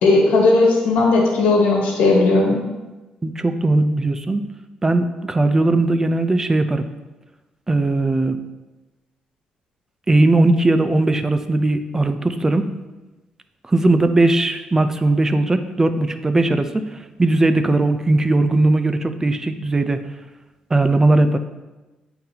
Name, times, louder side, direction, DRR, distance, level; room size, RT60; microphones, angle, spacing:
voice 1, 0.0-2.6, left 3 dB, 85° left, -1 dB, 1.2 m, -16 dB
voice 2, 3.2-4.5 4.8-6.9 7.7-8.4 10.1-12.7 13.7-16.8 17.2-20.0 20.7-21.4, right 2 dB, 20° right, 9 dB, 0.4 m, -18 dB
8.6 x 3.8 x 2.9 m, 1.1 s
cardioid pair, 90°, 3 cm